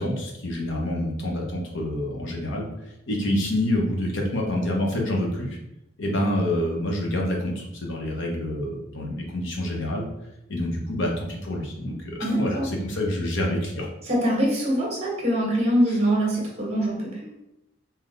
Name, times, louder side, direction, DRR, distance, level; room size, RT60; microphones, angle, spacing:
voice 1, 0.0-2.7 3.1-5.6 6.0-10.1 10.5-13.9, left 1 dB, 65° left, -1 dB, 1.0 m, -27 dB
voice 2, 12.2-12.7 14.0-17.3, equal, 35° right, -2 dB, 1.3 m, -23 dB
3.9 x 2.9 x 3.3 m, 0.87 s
head